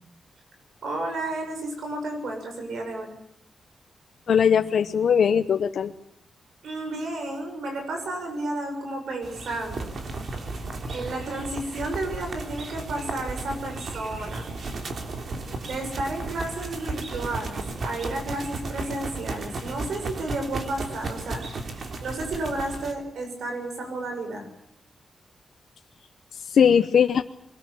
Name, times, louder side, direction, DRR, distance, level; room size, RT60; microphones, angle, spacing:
voice 1, 0.8-3.1 6.6-9.9 10.9-14.5 15.6-21.4 22.0-24.5, right 2 dB, 75° right, 4 dB, 7.2 m, -32 dB
voice 2, 4.3-5.9 26.5-27.2, left 7 dB, 70° left, 8 dB, 0.9 m, -20 dB
sound 1, 9.2-22.9, right 3 dB, 50° right, 3.3 m, -34 dB
23.0 x 20.0 x 8.8 m, 0.73 s
wide cardioid pair, 140°, 0 cm